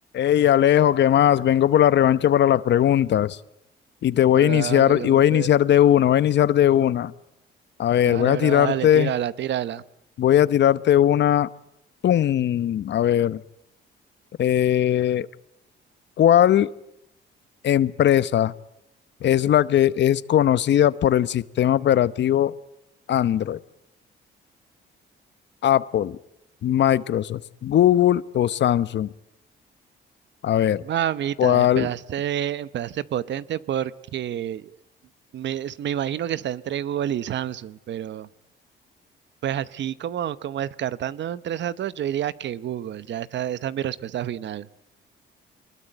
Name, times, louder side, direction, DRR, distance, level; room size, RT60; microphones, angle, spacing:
voice 1, 0.1-3.4 4.0-7.1 7.8-9.1 10.2-11.5 12.0-13.4 14.4-15.3 16.2-16.7 17.6-18.5 19.2-22.5 23.1-23.6 25.6-26.2 26.6-29.1 30.4-30.8 31.4-31.9, left 11 dB, 65° left, 17 dB, 0.9 m, -19 dB
voice 2, 4.3-5.5 8.0-9.8 30.8-34.8 35.3-38.3 39.4-44.7, right 10 dB, 65° right, 17 dB, 0.9 m, -29 dB
24.0 x 21.0 x 9.0 m, 0.81 s
cardioid pair, 90°, 20 cm